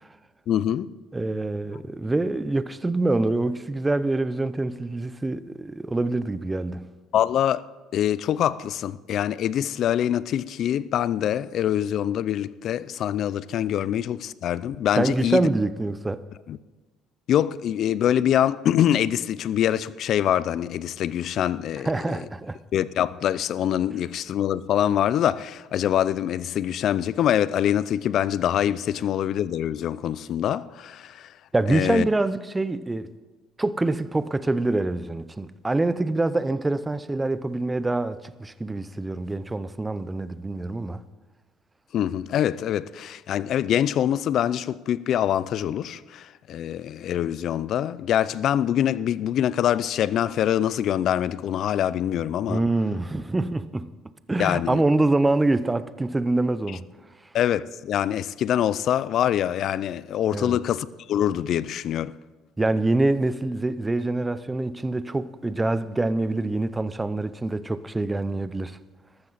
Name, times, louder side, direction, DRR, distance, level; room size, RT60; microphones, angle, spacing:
voice 1, 0.5-0.9 7.1-7.6 7.9-15.5 16.5-16.6 17.3-21.9 22.7-31.3 31.7-32.1 41.9-52.6 54.4-54.8 57.3-62.1, left 10 dB, 55° left, 0.4 m, -24 dB
voice 2, 1.1-6.9 15.0-16.2 21.8-22.6 31.5-33.1 33.6-41.0 52.5-53.9 54.3-56.9 60.3-60.6 62.6-68.8, right 2 dB, 10° right, 0.5 m, -25 dB
13.5 x 13.5 x 4.1 m
cardioid pair, 135°, 0 cm